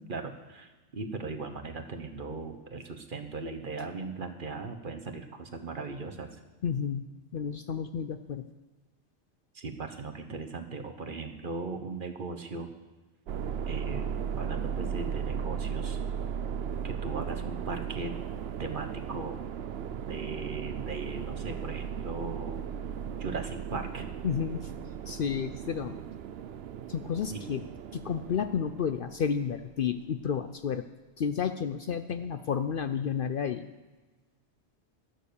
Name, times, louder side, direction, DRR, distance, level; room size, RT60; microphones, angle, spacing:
voice 1, 0.1-6.4 9.5-12.7 13.7-16.0 16.8-18.2 18.6-19.4 20.0-22.6 23.2-24.1 27.2-27.4, right 3 dB, 45° right, 6 dB, 1.2 m, -38 dB
voice 2, 6.6-7.1 7.3-8.4 24.2-24.7 25.1-26.0 26.9-27.6 27.9-30.8 31.2-33.7, left 7 dB, 60° left, 10 dB, 0.7 m, -31 dB
sound 1, 13.3-29.7, right 7 dB, 65° right, 0.8 m, -36 dB
12.5 x 11.0 x 7.0 m, 1.2 s
omnidirectional pair, 1.2 m